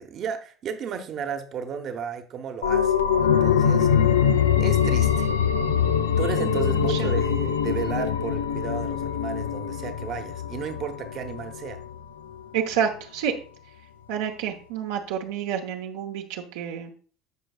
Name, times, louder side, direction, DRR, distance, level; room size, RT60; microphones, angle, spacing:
voice 1, 0.0-3.9 4.6-5.3 6.2-11.8, right 7 dB, 50° right, 7 dB, 1.0 m, -33 dB
sound 1, 2.6-12.0 12.3-12.4, left 8 dB, 85° left, 0.4 m, -23 dB
voice 2, 6.4-7.1 12.5-13.3 14.1-16.9, right 9 dB, 75° right, 2 dB, 1.0 m, -29 dB
14.0 x 5.1 x 2.4 m, 0.41 s
hypercardioid pair, 75°, 0 cm